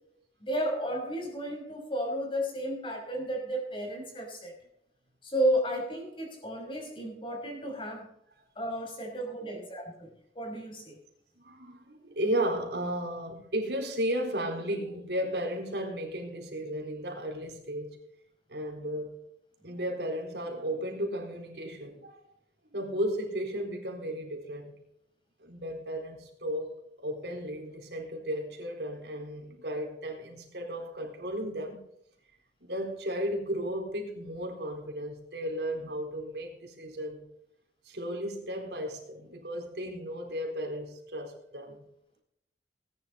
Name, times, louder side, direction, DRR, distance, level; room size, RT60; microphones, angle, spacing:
voice 1, 0.4-4.5 5.2-8.1 8.6-10.1 10.4-11.0, equal, 30° left, 1 dB, 5.7 m, -32 dB
voice 2, 11.4-18.0 18.5-19.2 19.6-22.2 22.7-24.7 25.4-26.7 27.0-31.8 32.6-37.2 37.8-41.8, equal, 70° right, 2 dB, 4.1 m, -34 dB
20.0 x 10.5 x 4.1 m, 0.74 s
head